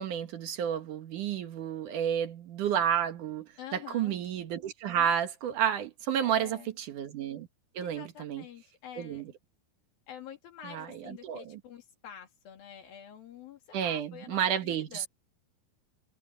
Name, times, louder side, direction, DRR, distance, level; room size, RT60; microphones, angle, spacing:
voice 1, 0.0-7.5 7.7-8.4 9.0-9.3 10.6-11.6 13.7-15.1, right 9 dB, 65° right, 2.8 m, -31 dB
voice 2, 3.6-4.2 6.2-6.7 7.8-9.3 10.1-15.1, left 9 dB, 90° left, 4.5 m, -47 dB
omnidirectional pair, 4.1 m